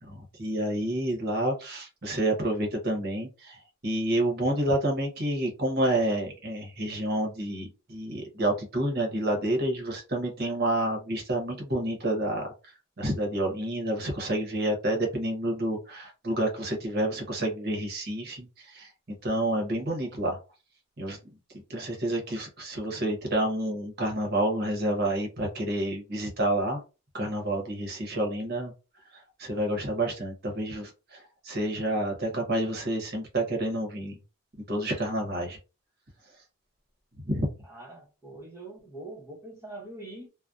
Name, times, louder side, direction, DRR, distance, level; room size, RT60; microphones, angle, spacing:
voice 1, 0.0-18.9 19.2-20.4 21.0-21.2 21.7-26.8 27.1-28.7 29.1-34.2 34.7-35.6 37.2-37.5, right 1 dB, 45° right, 0.8 m, -29 dB
voice 2, 37.7-40.3, right 2 dB, 10° right, 0.8 m, -43 dB
2.6 x 2.1 x 2.3 m
head